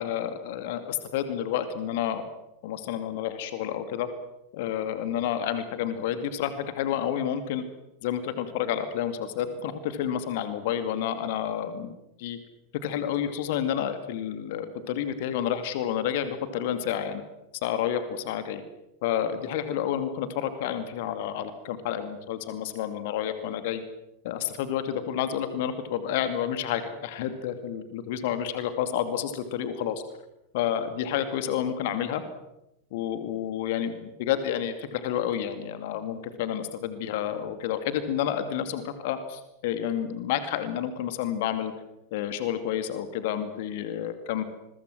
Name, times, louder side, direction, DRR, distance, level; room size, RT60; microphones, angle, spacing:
voice 1, 0.0-2.2 2.6-4.1 4.5-7.6 8.0-12.4 12.8-17.2 17.6-18.6 19.0-23.8 24.2-30.0 30.5-32.2 32.9-41.7 42.1-44.4, left 10 dB, 50° left, 10 dB, 2.4 m, -30 dB
27.0 x 22.5 x 6.3 m, 0.87 s
figure-of-eight pair, 90°, 0 cm